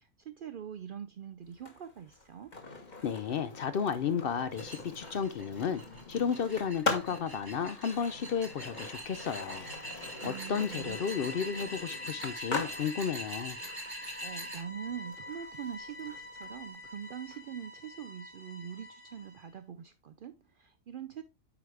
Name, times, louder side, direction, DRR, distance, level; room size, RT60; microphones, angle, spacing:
voice 1, 0.0-2.5 10.2-11.3 13.9-21.2, right 8 dB, 85° right, 0.4 m, -43 dB
Skateboard, 1.5-17.4, left 3 dB, 35° left, 1.3 m, -42 dB
voice 2, 3.0-5.8 6.1-9.7 10.2-13.6, left 7 dB, 60° left, 0.6 m, -33 dB
sound 1, 4.6-14.6, equal, 15° right, 1.1 m, -44 dB
sound 2, 8.8-19.5, left 1 dB, 85° left, 3.7 m, -48 dB
8.6 x 4.9 x 3.2 m
omnidirectional pair, 1.5 m